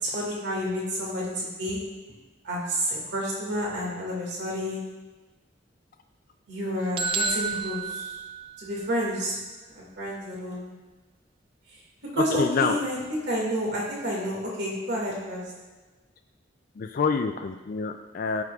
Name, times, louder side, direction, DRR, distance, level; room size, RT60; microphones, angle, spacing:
voice 1, 0.0-1.9 2.4-4.9 6.5-8.2 8.6-9.4 9.8-10.7 11.7-11.8 12.1-15.6, equal, 65° right, -4 dB, 2.1 m, -30 dB
sound 1, 7.0-8.9, right 4 dB, 30° right, 0.4 m, -30 dB
voice 2, 12.4-12.8 16.8-18.4, left 5 dB, 50° left, 5 dB, 0.4 m, -27 dB
15.5 x 6.1 x 2.4 m, 1.2 s
head